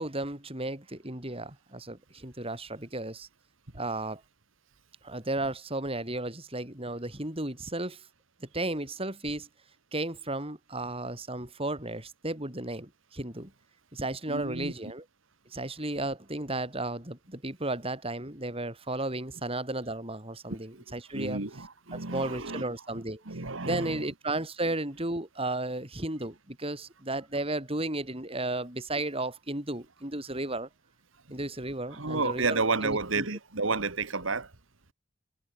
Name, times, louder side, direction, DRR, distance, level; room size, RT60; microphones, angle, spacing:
voice 1, 0.0-3.3 3.7-4.2 5.0-8.1 8.4-9.5 9.9-13.5 13.9-15.0 15.5-21.4 21.9-23.2 23.6-30.7 31.3-33.3, right 2 dB, 30° right, 5.2 m, -34 dB
voice 2, 14.3-14.7 20.7-22.7 23.3-24.1 31.9-34.5, right 3 dB, 75° right, 2.2 m, -31 dB
head